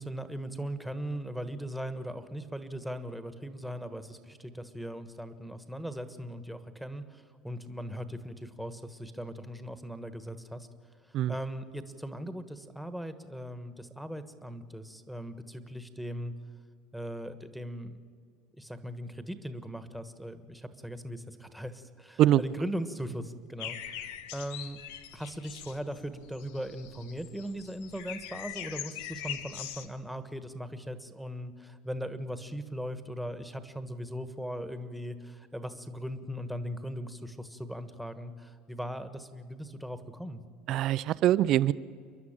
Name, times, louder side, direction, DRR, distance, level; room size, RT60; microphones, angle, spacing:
voice 1, 0.0-10.7 11.1-16.3 16.9-18.0 18.6-24.1 24.3-24.8 25.1-40.4, equal, ahead, 10 dB, 1.3 m, -39 dB
sound 1, 23.6-29.9, left 10 dB, 90° left, 1.3 m, -42 dB
voice 2, 40.7-41.7, right 13 dB, 50° right, 18 dB, 0.6 m, -23 dB
29.0 x 11.0 x 8.9 m, 2.1 s
supercardioid pair, 130°, 0 cm